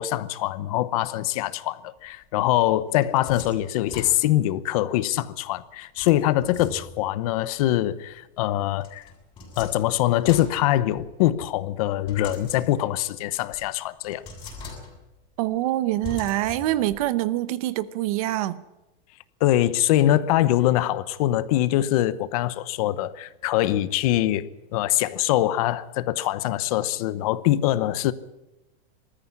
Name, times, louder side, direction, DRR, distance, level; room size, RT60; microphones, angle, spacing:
voice 1, 0.0-9.0 9.6-14.2 19.4-28.1, left 14 dB, 40° left, 0.9 m, -23 dB
sound 1, 2.6-4.6 6.0-7.2 8.8-11.3 12.1-13.1 13.5-13.6 14.1-15.2 16.0-17.0, left 3 dB, 15° left, 6.8 m, -41 dB
voice 2, 15.4-18.6, right 15 dB, 40° right, 0.8 m, -25 dB
20.5 x 14.0 x 9.8 m
supercardioid pair, 165°, 29 cm